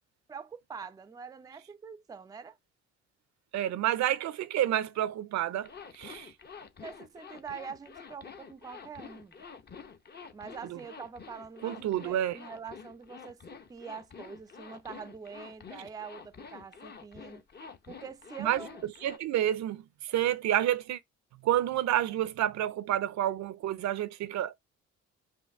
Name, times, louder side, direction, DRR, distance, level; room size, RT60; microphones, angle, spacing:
voice 1, 0.3-2.6 6.8-9.5 10.3-17.4 17.9-18.9, right 6 dB, 15° right, 0.4 m, -45 dB
voice 2, 3.5-6.3 10.7-10.8 11.6-12.4 18.4-18.6 19.0-21.0 21.4-24.5, right 12 dB, 65° right, 0.5 m, -29 dB
Zipper (clothing), 5.6-19.2, left 6 dB, 35° left, 0.7 m, -48 dB
5.5 x 2.6 x 3.4 m
cardioid pair, 90°, 30 cm